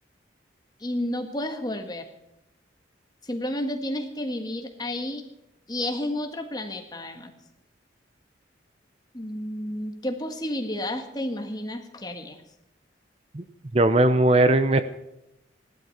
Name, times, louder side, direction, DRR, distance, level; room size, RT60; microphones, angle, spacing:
voice 1, 0.8-2.1 3.2-5.2 5.7-7.3 9.1-12.4, left 1 dB, 20° left, 5 dB, 1.6 m, -31 dB
voice 2, 13.7-14.8, right 2 dB, 30° right, 11 dB, 0.6 m, -19 dB
15.5 x 12.0 x 5.8 m, 0.88 s
head